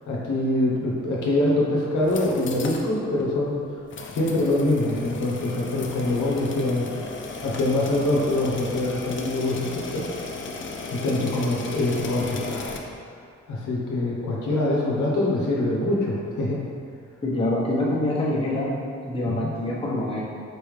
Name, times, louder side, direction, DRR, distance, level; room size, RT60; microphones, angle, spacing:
voice 1, 0.1-3.8 4.1-6.9 7.4-10.1 10.9-12.8 13.5-16.6 19.3-19.5, left 1 dB, 85° left, -4 dB, 0.9 m, -24 dB
sound 1, 1.9-2.9 3.2-3.3 3.9-12.8, left 3 dB, 40° left, 0.5 m, -35 dB
voice 2, 17.2-18.8 19.0-20.2, left 1 dB, 20° left, -6 dB, 1.0 m, -25 dB
4.5 x 3.5 x 3.2 m, 2.2 s
cardioid pair, 100°, 30 cm